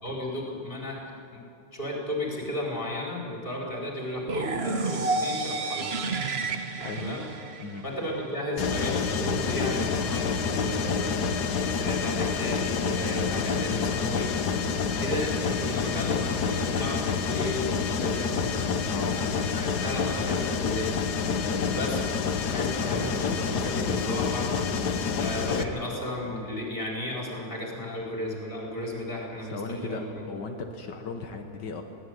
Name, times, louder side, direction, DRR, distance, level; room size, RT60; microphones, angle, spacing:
voice 1, 0.0-1.4 1.7-5.9 7.0-7.2 7.8-18.6 18.9-20.9 21.2-21.5 21.7-22.0 22.5-24.5 24.9-30.2, left 1 dB, 30° left, -2 dB, 4.9 m, -34 dB
sound 1, 4.3-8.2, right 3 dB, 40° right, 1.3 m, -30 dB
Mechanisms, 8.6-25.6, left 5 dB, 70° left, 1.6 m, -28 dB
voice 2, 18.9-19.2 21.4-21.7 29.5-31.8, left 4 dB, 90° left, 4 dB, 2.0 m, -36 dB
22.0 x 17.5 x 9.5 m, 2.5 s
omnidirectional pair, 1.8 m